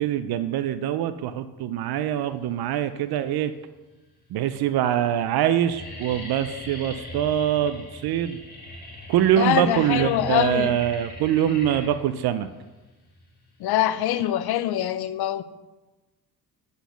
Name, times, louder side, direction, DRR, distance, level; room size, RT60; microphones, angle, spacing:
voice 1, 0.0-3.5 4.3-8.4 9.1-12.5, right 11 dB, 75° right, 0.5 m, -24 dB
sound 1, 3.1-3.7 4.3-4.4 4.7-5.1 5.3-14.3, left 1 dB, 25° left, 2.4 m, -41 dB
voice 2, 9.4-10.7 13.6-15.4, left 12 dB, 75° left, 0.6 m, -24 dB
8.0 x 4.1 x 6.9 m
cardioid pair, 110°, 38 cm